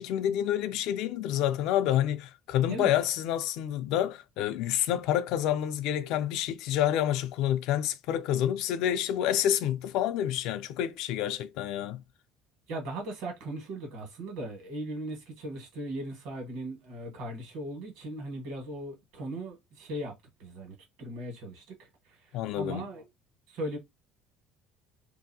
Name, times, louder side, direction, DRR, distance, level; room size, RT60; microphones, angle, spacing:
voice 1, 0.0-12.0 22.3-22.9, left 11 dB, 65° left, 0.4 m, -28 dB
voice 2, 12.7-22.2 22.5-23.1 23.5-23.8, right 1 dB, 70° right, 1.4 m, -38 dB
2.7 x 2.5 x 2.7 m
cardioid pair, 160°, 0 cm